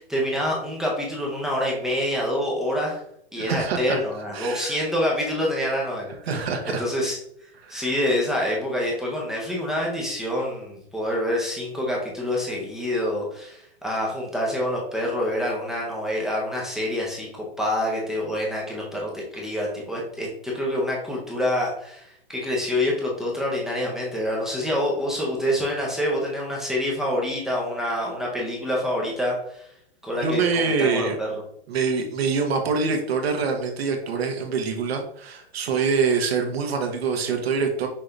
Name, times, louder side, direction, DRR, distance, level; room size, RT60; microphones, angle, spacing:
voice 1, 0.0-3.0 3.3-6.5 6.8-7.2 7.7-29.7 30.0-31.3, left 1 dB, ahead, -4 dB, 0.4 m, -26 dB
voice 2, 3.4-4.0 4.3-4.7 6.3-6.8 7.6-7.9 30.2-31.2 31.7-37.9, right 5 dB, 75° right, 3 dB, 1.1 m, -25 dB
5.7 x 2.6 x 3.3 m, 0.71 s
hypercardioid pair, 155°, 31 cm